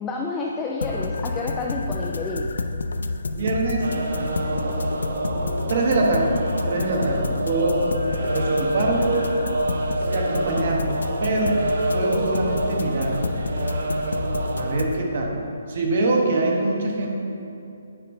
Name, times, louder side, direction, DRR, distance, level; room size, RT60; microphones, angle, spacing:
voice 1, 0.0-2.5, left 3 dB, 10° left, -1 dB, 0.3 m, -29 dB
sound 1, 0.8-14.9, left 3 dB, 90° left, 0.4 m, -29 dB
voice 2, 3.3-3.9 5.3-6.4 6.7-7.9 8.3-9.1 10.0-10.9 11.2-11.6 11.9-13.2 14.5-15.3 15.7-17.2, right 2 dB, 45° right, 0 dB, 1.2 m, -24 dB
sound 2, 3.8-14.8, right 2 dB, 70° right, 0.8 m, -28 dB
9.3 x 3.2 x 5.3 m, 2.7 s
hypercardioid pair, 165°, 0 cm